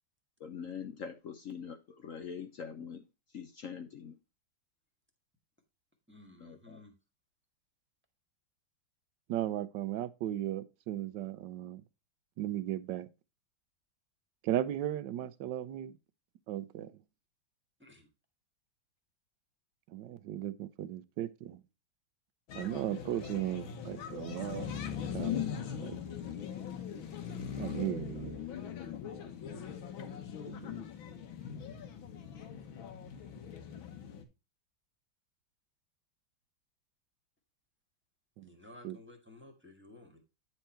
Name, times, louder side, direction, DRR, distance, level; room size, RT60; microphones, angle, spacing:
voice 1, 0.4-1.8 2.0-3.0 3.3-4.1 6.4-6.8, left 7 dB, 60° left, 0.8 m, -43 dB
voice 2, 6.1-6.9 17.8-18.1 38.4-40.2, left 2 dB, 5° right, 1.5 m, -55 dB
voice 3, 9.3-11.8 12.4-13.1 14.4-15.9 16.5-16.9 19.9-21.6 22.5-24.7 25.1-25.5 25.8-26.0 27.6-28.4 30.5-30.9 38.4-38.5 38.8-39.0, right 12 dB, 70° right, 1.3 m, -36 dB
sound 1, 22.5-34.2, left 8 dB, 90° left, 1.9 m, -40 dB
9.5 x 4.5 x 4.3 m
omnidirectional pair, 2.1 m